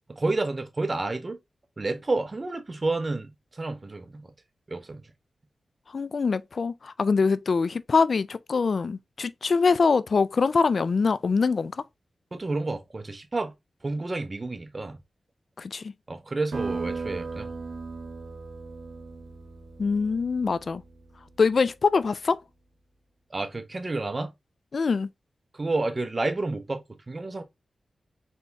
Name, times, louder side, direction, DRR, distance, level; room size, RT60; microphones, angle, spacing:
voice 1, 0.1-1.4 1.8-4.3 4.7-5.1 12.3-13.5 13.8-15.0 16.1-17.5 23.3-24.3 25.5-27.4, right 2 dB, 40° right, 1.0 m, -30 dB
voice 2, 5.9-11.7 15.6-15.9 19.8-20.8 21.4-22.4 24.7-25.1, left 4 dB, 65° left, 0.3 m, -24 dB
sound 1, 16.5-21.6, right 4 dB, 80° right, 1.2 m, -37 dB
4.2 x 3.5 x 2.8 m
cardioid pair, 45°, 0 cm